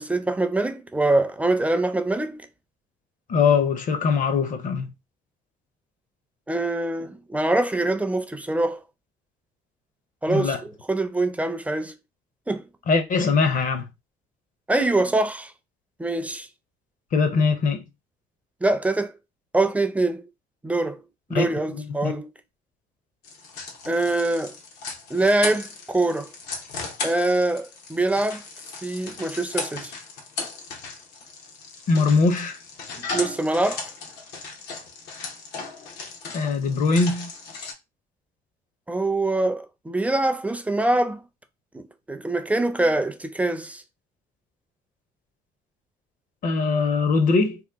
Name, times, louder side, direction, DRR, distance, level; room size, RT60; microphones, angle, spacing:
voice 1, 0.0-2.5 6.5-8.8 10.2-12.0 12.5-12.6 14.7-15.5 16.0-16.5 18.6-19.1 19.5-20.2 20.6-21.0 21.3-22.3 23.9-24.6 25.1-26.3 27.0-28.4 28.8-29.9 33.1-33.9 38.9-41.2 41.7-43.8, right 2 dB, 10° right, 0.4 m, -24 dB
voice 2, 3.3-4.9 10.3-10.6 12.9-13.9 17.1-17.8 21.3-22.1 31.9-32.6 36.3-37.3 46.4-47.6, left 4 dB, 50° left, 0.7 m, -22 dB
sound 1, 23.2-37.7, left 4 dB, 85° left, 0.9 m, -36 dB
2.9 x 2.2 x 3.4 m
cardioid pair, 110°, 17 cm